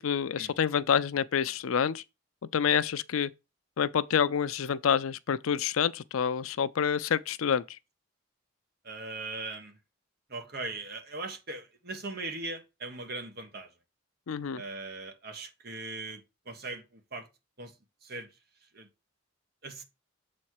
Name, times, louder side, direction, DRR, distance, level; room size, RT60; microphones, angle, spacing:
voice 1, 0.0-2.0 2.5-3.3 3.8-7.8 14.3-14.6, left 7 dB, 85° left, 0.5 m, -28 dB
voice 2, 8.8-9.8 10.3-13.7 14.5-17.3 17.6-17.7 18.0-18.3 18.7-18.9 19.6-19.8, right 3 dB, 50° right, 1.4 m, -39 dB
7.2 x 4.3 x 4.7 m
head